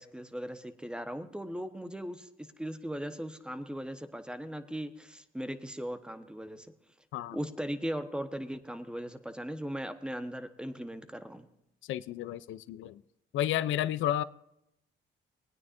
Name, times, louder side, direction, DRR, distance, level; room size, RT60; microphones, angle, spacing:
voice 1, 0.0-6.7 7.3-11.5, equal, 5° right, 9 dB, 1.1 m, -38 dB
voice 2, 11.9-13.0 13.3-14.2, left 12 dB, 75° left, 15 dB, 0.5 m, -31 dB
20.5 x 9.5 x 2.6 m, 0.82 s
cardioid pair, 90°, 20 cm